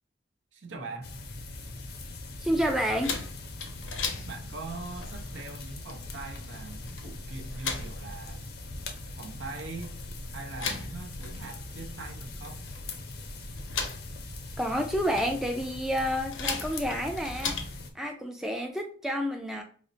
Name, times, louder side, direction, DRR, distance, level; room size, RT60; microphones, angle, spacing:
voice 1, 0.5-1.2 4.2-8.5 9.1-10.0 10.3-12.7, right 3 dB, 75° right, 0.7 m, -42 dB
sound 1, 1.0-17.9, left 2 dB, 55° left, 0.5 m, -42 dB
voice 2, 2.4-3.2 14.6-17.6 17.9-19.6, equal, ahead, 0.3 m, -29 dB
sound 2, 3.0-17.8, left 4 dB, 90° left, 0.7 m, -39 dB
5.0 x 2.1 x 2.7 m
head